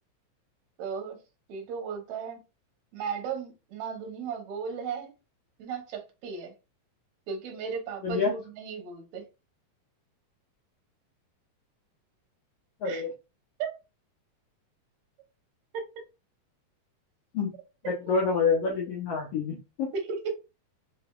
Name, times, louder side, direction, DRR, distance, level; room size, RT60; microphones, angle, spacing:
voice 1, 0.8-1.2 1.5-2.4 2.9-5.1 5.6-6.5 7.3-9.2 12.8-13.0 13.6-13.7 19.9-20.4, right 6 dB, 65° right, 4 dB, 2.1 m, -35 dB
voice 2, 17.8-19.9, left 5 dB, 90° left, 0 dB, 1.4 m, -27 dB
5.1 x 3.4 x 2.4 m, 0.28 s
omnidirectional pair, 3.9 m